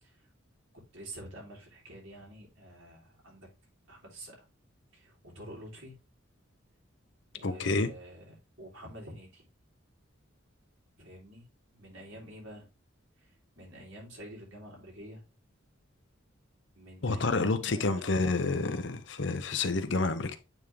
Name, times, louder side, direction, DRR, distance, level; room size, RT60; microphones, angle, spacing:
voice 1, 0.9-3.5 3.9-4.4 4.9-6.0 7.3-9.5 11.0-11.5 11.7-12.7 13.2-15.2 16.8-18.2, right 1 dB, 70° right, 2.8 m, -48 dB
voice 2, 7.4-7.9 17.0-20.4, left 3 dB, 60° left, 0.7 m, -29 dB
8.9 x 3.5 x 3.1 m
head